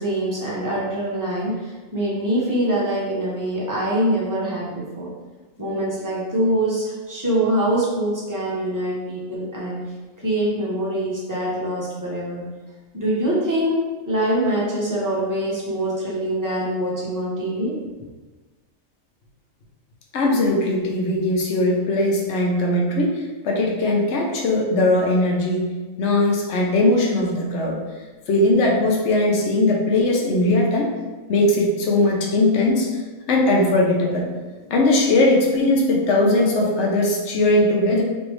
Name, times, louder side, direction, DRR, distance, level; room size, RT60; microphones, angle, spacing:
voice 1, 0.0-5.1 5.6-9.8 10.2-12.4 12.9-17.7, right 1 dB, 20° right, -7 dB, 0.5 m, -24 dB
voice 2, 20.1-25.7 26.0-27.8 28.3-30.9 31.3-32.9 33.3-34.3 34.7-38.0, left 2 dB, 65° left, -1 dB, 0.9 m, -19 dB
3.2 x 2.6 x 3.0 m, 1.3 s
omnidirectional pair, 1.4 m